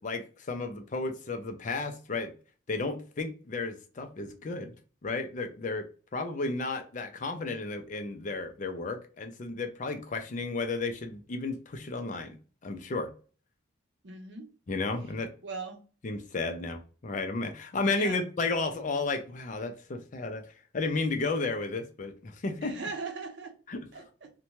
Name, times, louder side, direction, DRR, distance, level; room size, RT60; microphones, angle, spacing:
voice 1, 0.0-2.3 2.7-4.7 5.0-5.9 6.1-12.4 12.6-13.1 14.7-15.3 16.0-20.4 20.7-22.7 23.7-23.9, left 3 dB, 40° left, 6 dB, 0.4 m, -33 dB
voice 2, 14.0-14.5 15.4-15.8 17.9-18.2 22.6-23.5 23.9-24.3, right 4 dB, 60° right, 5 dB, 0.6 m, -39 dB
2.6 x 2.2 x 3.0 m, 0.37 s
head